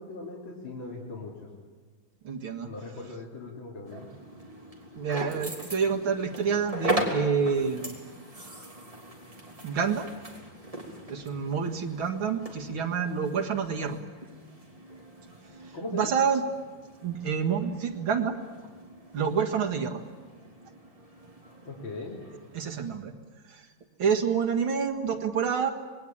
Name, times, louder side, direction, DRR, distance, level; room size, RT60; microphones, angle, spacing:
voice 1, 0.0-1.3 2.6-4.1 15.3-15.4 15.7-16.1 21.7-22.2, left 3 dB, 75° left, -3 dB, 3.7 m, -39 dB
voice 2, 2.2-2.7 5.0-8.0 9.6-10.1 11.1-14.0 15.6-16.4 17.0-18.4 19.1-20.0 22.5-23.1 23.5-23.6 24.0-25.7, right 6 dB, 85° right, 3 dB, 2.6 m, -28 dB
sound 1, 3.8-23.0, right 1 dB, 15° right, 3.1 m, -39 dB
26.0 x 20.5 x 8.8 m, 1.4 s
omnidirectional pair, 2.2 m